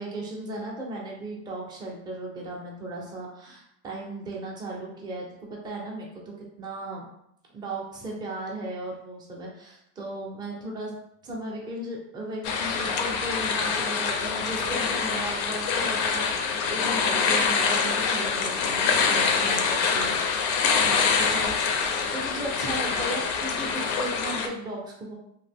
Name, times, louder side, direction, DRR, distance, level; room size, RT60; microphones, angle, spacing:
voice 1, 0.0-5.2 5.5-7.0 7.5-10.9 11.2-20.5 20.9-21.5 22.1-25.1, right 2 dB, 10° right, -3 dB, 0.4 m, -36 dB
sound 1, 12.4-24.5, left 5 dB, 60° left, 0.5 m, -25 dB
2.9 x 2.4 x 3.3 m, 0.76 s
cardioid pair, 160°, 41 cm